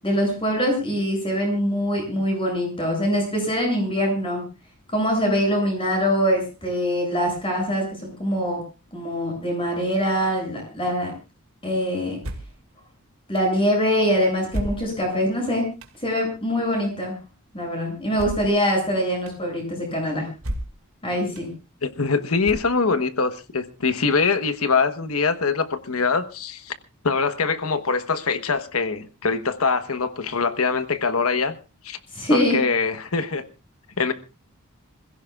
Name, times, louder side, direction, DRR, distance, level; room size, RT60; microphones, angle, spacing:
voice 1, 0.0-4.4 4.9-8.6 8.9-11.1 11.6-12.2 13.3-15.7 16.0-17.2 17.5-20.3 21.0-21.5 32.1-32.6, equal, 25° left, 7.9 m, -23 dB
sound 1, 12.2-12.6 13.3-13.4 14.5-15.2 15.8-16.0 18.1-18.6 19.3-19.4 20.4-20.9 21.3-21.4 22.4-23.0, equal, 80° right, 2.3 m, -32 dB
voice 2, 21.8-26.7 27.0-31.5 31.8-32.0 32.3-33.5 34.0-34.1, left 4 dB, 85° left, 1.3 m, -23 dB
26.5 x 16.0 x 2.5 m
head